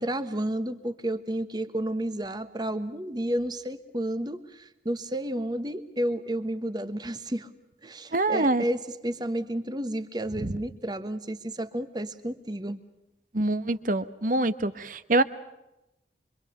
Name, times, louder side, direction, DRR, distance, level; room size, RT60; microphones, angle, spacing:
voice 1, 0.0-7.5 7.8-12.8, right 1 dB, 25° right, 11 dB, 1.2 m, -31 dB
voice 2, 8.1-8.6 10.4-10.6 13.3-15.2, right 2 dB, 50° right, 13 dB, 1.0 m, -25 dB
25.5 x 25.0 x 6.6 m, 0.91 s
head